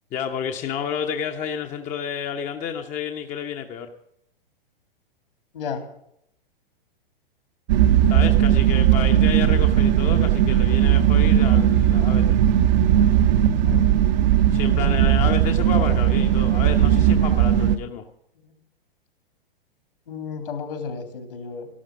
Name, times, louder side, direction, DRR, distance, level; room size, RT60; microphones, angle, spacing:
voice 1, 0.1-3.9 8.1-12.4 14.5-18.0, left 8 dB, 25° left, 5 dB, 1.0 m, -30 dB
sound 1, 7.7-17.8, right 10 dB, 50° right, 0.9 m, -18 dB
voice 2, 13.5-13.9 18.4-18.5 20.1-21.7, left 5 dB, 70° left, 6 dB, 3.3 m, -32 dB
13.0 x 12.5 x 6.1 m, 0.75 s
figure-of-eight pair, 110°, 29 cm